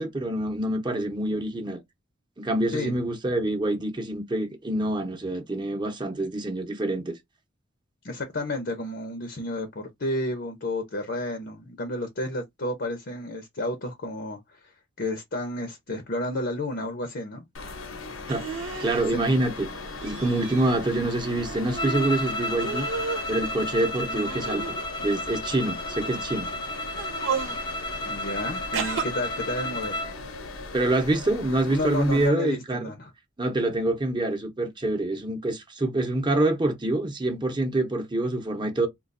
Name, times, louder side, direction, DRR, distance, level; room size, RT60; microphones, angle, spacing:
voice 1, 0.0-1.8 2.4-7.2 18.3-18.4 18.8-19.7 20.0-22.9 23.3-26.5 30.7-32.8 33.4-38.9, right 2 dB, 25° right, 0.8 m, -26 dB
voice 2, 8.0-14.6 15.0-17.5 19.1-19.2 28.1-30.1 31.7-33.1, left 2 dB, 55° left, 0.7 m, -31 dB
sound 1, 17.5-32.3, left 3 dB, 85° left, 0.8 m, -39 dB
sound 2, 18.3-19.0 20.0-20.7 21.1-22.2 22.6-23.3 24.0-25.1 25.9-26.2 26.9-27.6 28.7-29.1, right 6 dB, 75° right, 0.9 m, -33 dB
sound 3, 21.8-30.2, left 1 dB, 20° left, 0.4 m, -32 dB
3.8 x 2.5 x 2.5 m
head